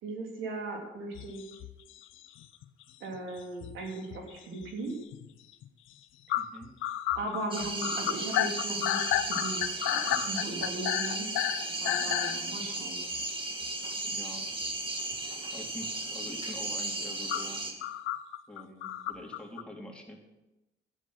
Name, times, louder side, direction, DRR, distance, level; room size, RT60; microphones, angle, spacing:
voice 1, 0.0-1.4 3.0-5.0 7.2-11.3 11.8-13.0, right 2 dB, 85° right, 1 dB, 3.5 m, -38 dB
sound 1, 1.2-2.8 3.1-4.7 5.1-5.3 5.6-5.7 6.3-12.4 13.1-13.2 15.1-15.2 17.3-19.6, left 13 dB, 85° left, 0.7 m, -32 dB
voice 2, 6.3-6.7 14.1-14.5 15.5-17.7 18.5-20.2, left 1 dB, 5° left, 0 dB, 2.9 m, -45 dB
sound 2, 7.5-17.7, right 2 dB, 25° right, 2.5 m, -35 dB
13.0 x 9.8 x 6.2 m, 0.96 s
cardioid pair, 90°, 20 cm